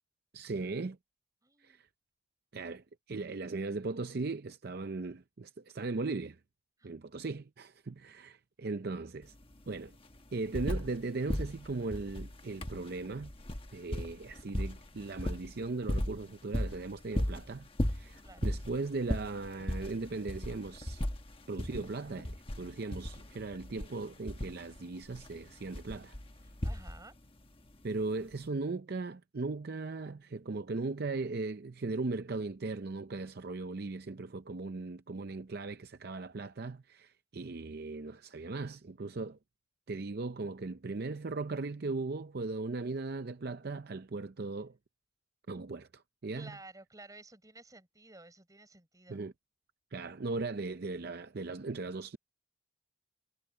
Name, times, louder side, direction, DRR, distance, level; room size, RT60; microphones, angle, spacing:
voice 1, 0.3-1.0 1.6-1.9 2.5-6.4 6.8-9.3 9.7-9.9 10.3-13.3 13.7-21.0 21.5-26.2 27.8-39.4 39.9-44.8 45.5-46.6 49.1-49.3 49.9-52.2, right 3 dB, 50° right, 0.6 m, -38 dB
voice 2, 1.4-1.8 6.8-6.9 18.2-18.5 26.4-27.1 46.3-49.2, right 2 dB, 15° right, 4.5 m, -53 dB
sound 1, 9.2-9.3 9.6-11.0 11.3-27.3 28.3-28.4, left 1 dB, 25° left, 1.3 m, -37 dB
head